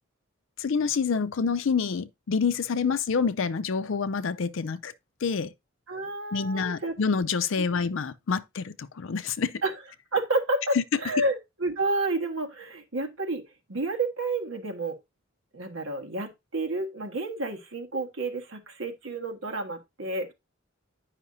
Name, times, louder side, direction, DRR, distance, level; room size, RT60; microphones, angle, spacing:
voice 1, 0.6-4.9 5.2-5.5 6.3-9.6 10.7-10.8, left 5 dB, 65° left, 0.5 m, -27 dB
voice 2, 5.9-6.9 7.6-7.8 9.6-9.7 10.1-13.4 13.7-15.0 15.5-20.3, right 2 dB, 70° right, 1.5 m, -30 dB
9.6 x 5.7 x 2.7 m
head